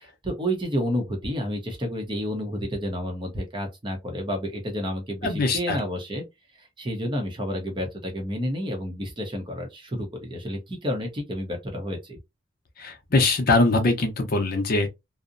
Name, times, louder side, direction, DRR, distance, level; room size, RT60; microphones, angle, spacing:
voice 1, 0.0-6.2 6.6-12.2, equal, 25° right, 0.7 m, -30 dB
voice 2, 5.2-5.8 12.8-14.9, left 2 dB, 50° left, 0.6 m, -22 dB
2.6 x 2.0 x 2.5 m
head